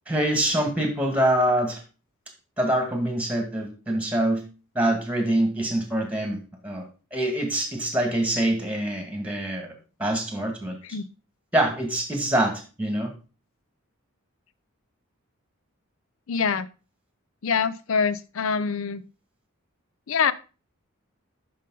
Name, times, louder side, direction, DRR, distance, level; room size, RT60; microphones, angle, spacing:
voice 1, 0.1-1.8 2.6-4.4 4.8-10.8 11.5-13.1, right 1 dB, 5° right, 4 dB, 1.9 m, -25 dB
voice 2, 16.3-16.7 17.4-19.0 20.1-20.3, left 6 dB, 70° left, 17 dB, 0.5 m, -25 dB
11.0 x 5.1 x 3.8 m, 0.33 s
head